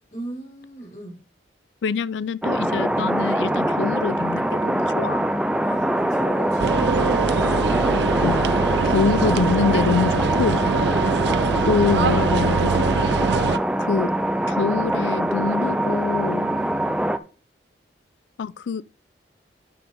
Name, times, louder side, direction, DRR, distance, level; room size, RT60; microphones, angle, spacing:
voice 1, 0.1-1.2 5.6-7.1 8.7-8.9 10.7-10.8 16.5-16.8, right 1 dB, 40° left, 4.3 m, -36 dB
voice 2, 1.8-5.3 8.2-8.4 8.8-10.6 11.7-12.8 13.8-14.1 14.5-16.6 18.4-18.8, left 5 dB, 80° left, 0.4 m, -25 dB
sound 1, 2.4-17.2, right 1 dB, 5° right, 0.4 m, -23 dB
sound 2, 6.6-13.6, right 5 dB, 70° right, 0.5 m, -23 dB
8.8 x 4.9 x 5.3 m
head